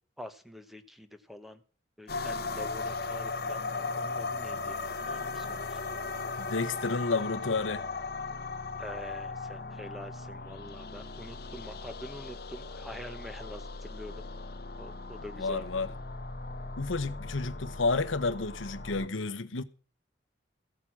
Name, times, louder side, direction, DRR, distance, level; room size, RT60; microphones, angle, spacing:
voice 1, 0.2-1.6 2.0-5.8 8.8-14.3 14.8-15.7, equal, ahead, 1.1 m, -46 dB
sound 1, 2.1-19.1, left 3 dB, 50° left, 0.9 m, -38 dB
voice 2, 6.4-7.9 15.4-15.9 16.8-19.6, left 3 dB, 85° left, 1.0 m, -31 dB
15.5 x 8.6 x 6.2 m
head